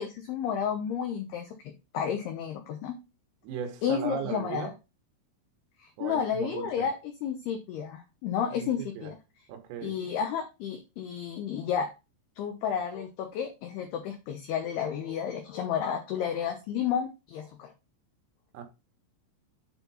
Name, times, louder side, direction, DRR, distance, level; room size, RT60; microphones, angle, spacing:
voice 1, 0.0-3.0 3.8-4.7 5.8-9.2 9.8-11.9 12.4-17.7, left 8 dB, 80° left, 2.3 m, -32 dB
voice 2, 3.4-4.7 6.0-6.9 8.5-9.1 9.5-10.0 18.5-18.6, right 7 dB, 85° right, 3.9 m, -37 dB
8.6 x 4.5 x 4.1 m
omnidirectional pair, 5.8 m